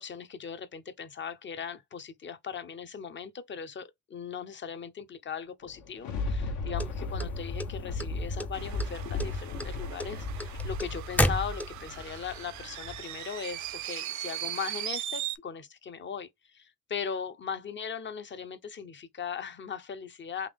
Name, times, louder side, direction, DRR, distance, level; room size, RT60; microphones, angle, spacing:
voice 1, 0.0-20.5, left 7 dB, 40° left, 0.7 m, -39 dB
Thunder, 5.6-13.2 13.7-13.8, left 3 dB, 75° left, 1.1 m, -35 dB
sound 1, 6.8-8.1 8.4-8.9 9.2-12.0, equal, 5° left, 0.4 m, -29 dB
sound 2, 8.5-15.4, right 13 dB, 70° right, 0.5 m, -39 dB
3.5 x 3.0 x 3.5 m
cardioid pair, 90°, 30 cm